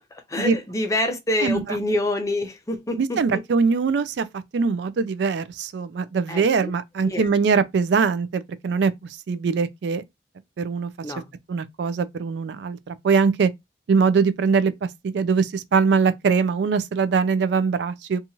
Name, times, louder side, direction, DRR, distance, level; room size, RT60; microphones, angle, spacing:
voice 1, 0.1-3.4 6.3-6.7 7.0-7.3 11.0-11.3, left 1 dB, 20° left, 0.5 m, -27 dB
voice 2, 3.0-4.3 4.5-8.9 9.3-10.0 10.6-10.9 11.5-13.5 13.9-18.2, right 5 dB, 65° right, 0.3 m, -22 dB
2.8 x 2.4 x 2.7 m
head